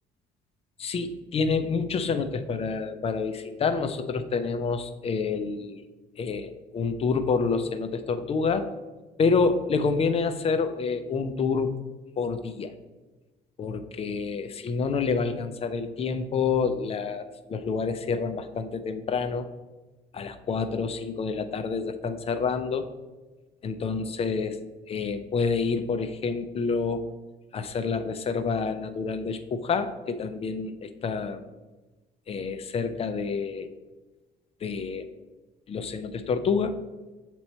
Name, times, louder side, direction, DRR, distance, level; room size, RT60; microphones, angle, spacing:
voice 1, 0.8-5.8 6.2-8.7 9.2-11.8 12.2-12.7 13.6-19.5 20.1-22.9 23.6-24.6 24.9-27.0 27.5-31.5 32.3-33.7 34.6-35.1 35.7-36.8, left 5 dB, 35° left, 10 dB, 0.5 m, -28 dB
7.7 x 3.0 x 4.2 m, 1.2 s
cardioid pair, 110°, 17 cm